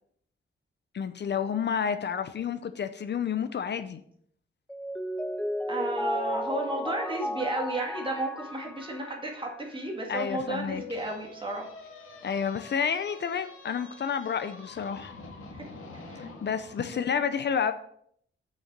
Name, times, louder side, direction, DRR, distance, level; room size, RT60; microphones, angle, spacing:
voice 1, 0.9-4.0 10.1-10.8 12.2-15.1 16.2-17.7, left 7 dB, 55° left, 11 dB, 0.6 m, -30 dB
Mallet percussion, 4.7-9.7, left 1 dB, 5° left, 0.3 m, -33 dB
voice 2, 5.7-11.7 15.5-15.7 15.9-16.3 16.9-17.1, right 2 dB, 25° right, 1 dB, 2.1 m, -33 dB
sound 1, 10.7-16.9, left 3 dB, 80° left, 1.8 m, -46 dB
6.5 x 6.3 x 6.7 m, 0.64 s
wide cardioid pair, 140°, 21 cm